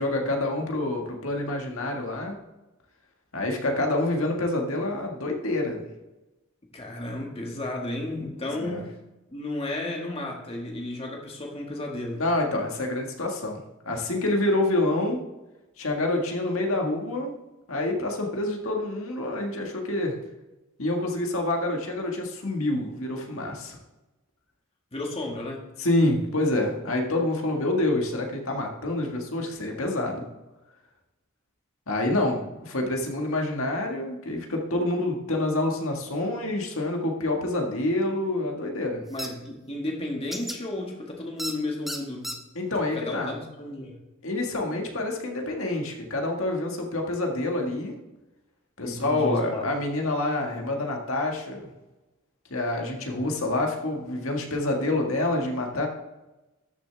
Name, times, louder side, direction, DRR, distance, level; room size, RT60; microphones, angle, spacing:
voice 1, 0.0-2.4 3.3-5.9 8.4-8.8 12.2-15.2 15.8-17.3 17.7-20.2 20.8-23.8 25.8-30.2 31.9-39.0 42.6-43.4 44.2-47.9 48.8-51.7 52.5-55.9, left 2 dB, 75° left, 1 dB, 1.8 m, -27 dB
voice 2, 6.7-8.9 9.3-12.2 24.9-25.6 39.1-42.4 42.9-44.0 48.8-49.6, left 1 dB, 30° left, 0 dB, 1.8 m, -33 dB
sound 1, 39.2-39.3 40.3-40.6 41.4-41.5 41.9-42.4, equal, ahead, 0.8 m, -32 dB
13.0 x 6.7 x 3.5 m, 1.0 s
head